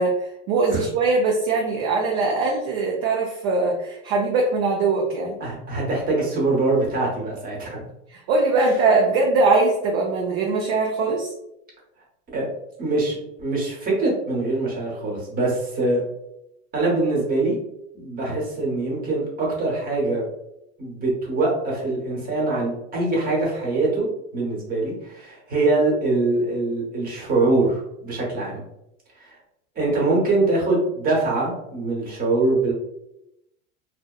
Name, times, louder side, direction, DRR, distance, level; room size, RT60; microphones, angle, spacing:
voice 1, 0.0-5.4 8.1-11.3, right 3 dB, 45° right, 0 dB, 0.4 m, -21 dB
voice 2, 5.4-7.9 12.3-12.5 12.8-16.0 16.7-17.6 17.9-20.2 20.8-28.6 29.2-29.3 29.8-32.7, right 2 dB, 25° right, -3 dB, 0.9 m, -23 dB
2.7 x 2.0 x 2.3 m, 0.84 s
supercardioid pair, 130°, 34 cm